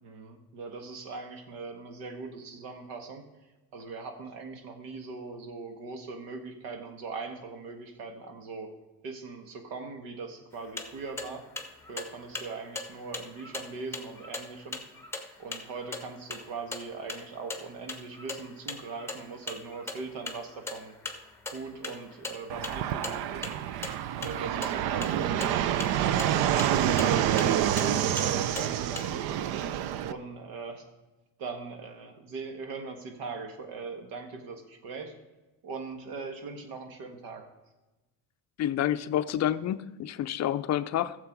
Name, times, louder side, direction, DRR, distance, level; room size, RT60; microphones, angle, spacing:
voice 1, 0.0-3.2 3.7-8.7 9.0-11.5 11.9-14.8 15.4-21.0 21.5-23.5 24.1-26.5 27.0-29.5 30.0-30.8 31.4-35.1 35.6-37.5, right 4 dB, 90° right, 6 dB, 1.8 m, -40 dB
sound 1, 10.5-29.1, left 3 dB, 5° left, 1.0 m, -41 dB
Fixed-wing aircraft airplane, 22.5-30.1, right 11 dB, 65° right, 0.6 m, -27 dB
voice 2, 38.6-41.2, left 11 dB, 45° left, 13 dB, 0.4 m, -28 dB
13.5 x 7.3 x 4.6 m, 1.1 s
cardioid pair, 125°, 40 cm